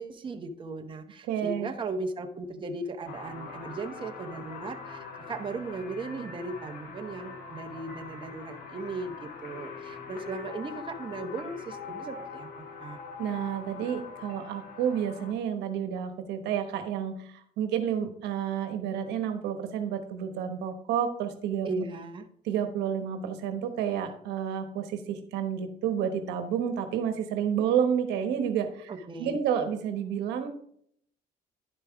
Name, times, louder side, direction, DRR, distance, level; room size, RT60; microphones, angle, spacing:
voice 1, 0.0-13.0 21.6-22.3 28.9-29.4, right 3 dB, 30° right, 5 dB, 0.9 m, -37 dB
voice 2, 1.3-1.7 13.2-21.8 22.4-28.9 29.2-30.5, right 8 dB, 85° right, 8 dB, 1.1 m, -30 dB
sound 1, 3.1-15.3, left 5 dB, 65° left, 1.5 m, -43 dB
11.0 x 5.5 x 3.5 m, 0.67 s
cardioid pair, 110°, 17 cm